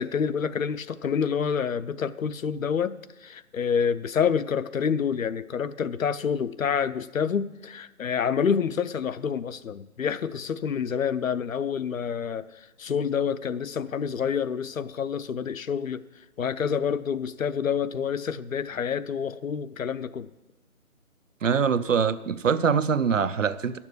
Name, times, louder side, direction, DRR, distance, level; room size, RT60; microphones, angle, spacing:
voice 1, 0.0-12.5 12.8-16.0 16.4-20.3, left 7 dB, 65° left, 15 dB, 0.7 m, -28 dB
voice 2, 21.4-23.8, right 6 dB, 60° right, 14 dB, 0.7 m, -23 dB
11.0 x 7.2 x 8.2 m, 1.1 s
figure-of-eight pair, 155°, 44 cm